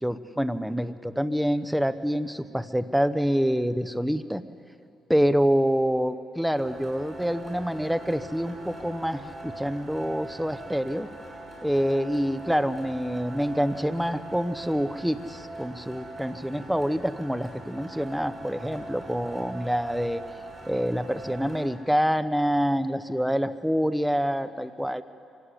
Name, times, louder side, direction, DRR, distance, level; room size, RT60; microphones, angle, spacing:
voice 1, 0.0-4.4 5.1-11.1 11.6-20.2 20.7-25.0, equal, ahead, 12 dB, 0.9 m, -26 dB
sound 1, 6.6-21.7, right 2 dB, 25° right, 7.3 m, -42 dB
25.0 x 16.5 x 9.9 m, 2.6 s
cardioid pair, 90°, 0 cm